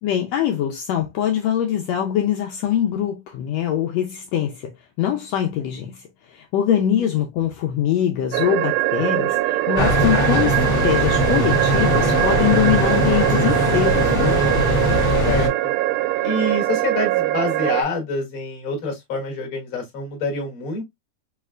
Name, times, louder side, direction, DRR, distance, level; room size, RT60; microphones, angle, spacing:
voice 1, 0.0-4.7 5.0-14.4, left 10 dB, 90° left, 1.5 m, -23 dB
sound 1, 8.3-17.8, right 17 dB, 85° right, 2.1 m, -22 dB
sound 2, 9.8-15.5, left 1 dB, 70° left, 0.6 m, -21 dB
voice 2, 15.2-15.7 16.2-20.8, left 2 dB, 50° left, 1.1 m, -26 dB
5.1 x 3.2 x 2.3 m
omnidirectional pair, 3.7 m